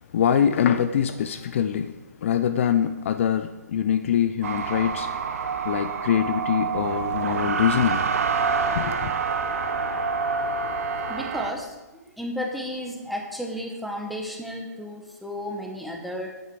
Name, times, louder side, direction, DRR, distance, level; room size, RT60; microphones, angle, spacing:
voice 1, 0.1-1.9 2.2-5.1 5.6-8.0 8.8-9.1, left 9 dB, 45° left, 11 dB, 0.6 m, -23 dB
sound 1, 4.4-11.5, right 5 dB, 55° right, 1.2 m, -27 dB
voice 2, 11.1-11.7 12.0-16.4, left 1 dB, ahead, 0 dB, 1.4 m, -33 dB
11.0 x 9.2 x 4.8 m, 1.1 s
hypercardioid pair, 140°, 9 cm